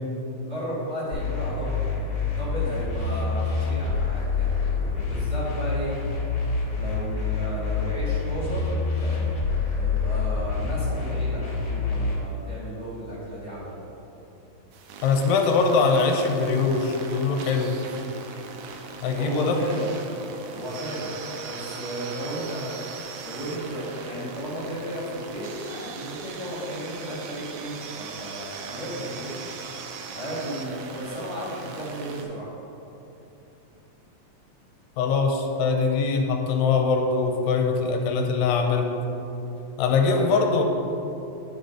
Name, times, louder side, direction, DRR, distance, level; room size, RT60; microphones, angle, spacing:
voice 1, 0.4-1.9 2.2-6.0 6.7-9.3 9.8-13.8 19.2-19.9 20.5-21.2 21.4-22.8 23.2-29.3 30.1-32.5 40.1-40.4, right 1 dB, 35° right, -11 dB, 1.9 m, -34 dB
sound 1, 1.1-12.1, left 4 dB, 35° left, 1.6 m, -27 dB
sound 2, 14.7-32.2, right 5 dB, 85° right, 1.6 m, -39 dB
voice 2, 15.0-17.7 19.0-19.6 35.0-38.9 39.8-40.6, left 4 dB, 90° left, 2 dB, 2.3 m, -22 dB
9.9 x 4.1 x 5.0 m, 3.0 s
omnidirectional pair, 4.0 m